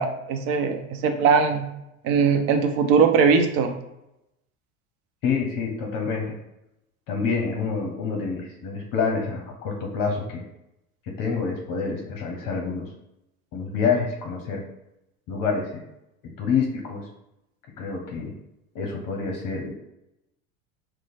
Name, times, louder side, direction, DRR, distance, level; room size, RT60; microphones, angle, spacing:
voice 1, 0.0-1.6 2.0-3.7, right 5 dB, 55° right, 6 dB, 0.7 m, -20 dB
voice 2, 5.2-6.4 7.1-10.4 11.0-12.9 13.5-14.6 15.3-15.8 16.2-17.1 17.8-18.3 18.7-19.7, left 5 dB, 50° left, 1 dB, 0.8 m, -27 dB
3.0 x 2.2 x 4.1 m, 0.87 s
hypercardioid pair, 85°, 43 cm